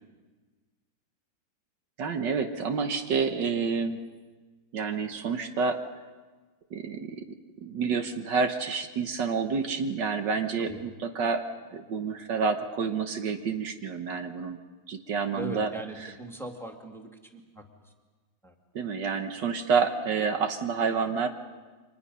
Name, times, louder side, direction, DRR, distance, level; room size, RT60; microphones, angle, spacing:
voice 1, 2.0-4.0 4.7-5.8 6.7-7.2 7.6-11.4 11.7-14.6 14.9-15.7 16.0-16.1 18.7-21.3, right 5 dB, 70° right, 6 dB, 1.7 m, -28 dB
voice 2, 15.3-17.6 18.4-18.5, right 1 dB, ahead, 2 dB, 2.0 m, -40 dB
30.0 x 25.0 x 5.6 m, 1.3 s
omnidirectional pair, 2.0 m